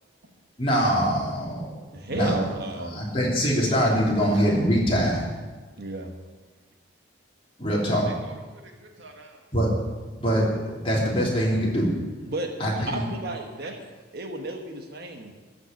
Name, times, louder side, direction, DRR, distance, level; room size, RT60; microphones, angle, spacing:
voice 1, 0.6-1.6 2.1-2.3 2.9-5.2 7.6-8.1 9.5-9.7 10.2-11.9 12.6-13.0, equal, 30° left, -4 dB, 3.2 m, -23 dB
voice 2, 1.9-3.1 5.8-6.1 12.3-12.5 12.9-13.8 14.1-15.3, right 2 dB, 55° right, 3 dB, 1.3 m, -33 dB
voice 3, 7.8-9.5 13.2-13.8, right 2 dB, 75° right, 2 dB, 1.9 m, -48 dB
14.5 x 5.9 x 9.1 m, 1.3 s
head